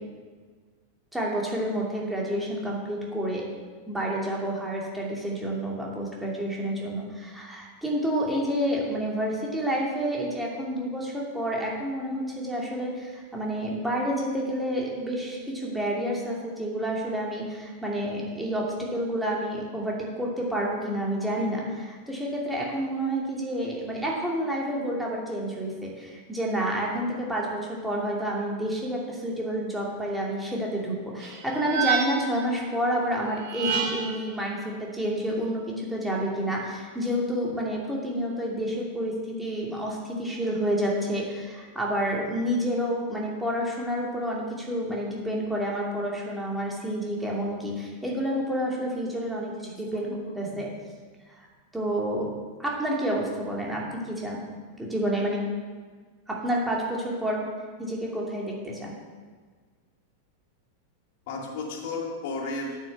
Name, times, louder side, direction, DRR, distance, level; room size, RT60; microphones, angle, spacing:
voice 1, 1.1-3.4 3.9-50.7 51.3-51.4 51.7-52.3 52.6-54.4 54.8-55.4 56.3-57.4 57.8-58.9, equal, 5° right, -3 dB, 2.5 m, -29 dB
sound 1, 31.2-32.4 33.4-34.2, right 6 dB, 45° right, 2.5 m, -29 dB
voice 2, 49.6-50.1 50.4-50.6 61.3-62.8, left 3 dB, 50° left, 0 dB, 2.2 m, -34 dB
8.8 x 6.7 x 7.0 m, 1.5 s
figure-of-eight pair, 90°, 0 cm